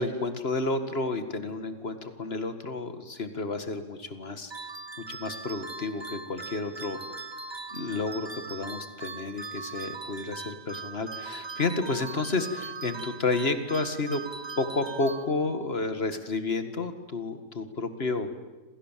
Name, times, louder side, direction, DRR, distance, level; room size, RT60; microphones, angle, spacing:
voice 1, 0.0-4.5 5.1-7.0 7.7-14.2 14.6-18.3, left 3 dB, 35° left, 9 dB, 2.1 m, -31 dB
sound 1, 4.5-15.7, right 4 dB, 15° right, 1.2 m, -40 dB
28.0 x 27.5 x 7.6 m, 1.2 s
omnidirectional pair, 1.8 m